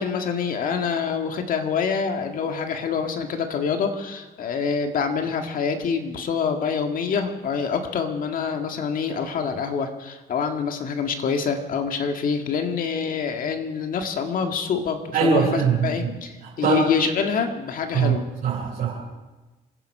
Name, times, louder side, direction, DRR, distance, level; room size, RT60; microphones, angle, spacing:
voice 1, 0.0-18.2, left 6 dB, 55° left, 5 dB, 1.8 m, -26 dB
voice 2, 15.1-16.1 16.6-16.8 17.9-18.2 18.4-19.0, right 5 dB, 55° right, -5 dB, 3.8 m, -21 dB
26.5 x 10.0 x 5.5 m, 1.1 s
cardioid pair, 110°, 17 cm